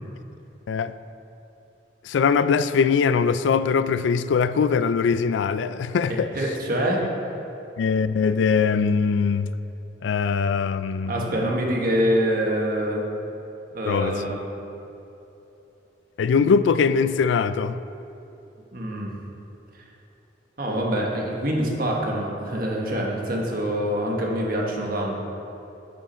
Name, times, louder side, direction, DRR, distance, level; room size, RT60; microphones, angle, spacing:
voice 1, 2.0-6.3 7.8-9.5 10.0-11.3 13.9-14.2 16.2-17.8, left 5 dB, 75° left, 0.3 m, -22 dB
voice 2, 6.1-7.0 11.1-13.0 13.7-14.4 18.7-19.1 20.6-25.2, equal, 50° right, 1.3 m, -25 dB
10.5 x 6.1 x 4.3 m
head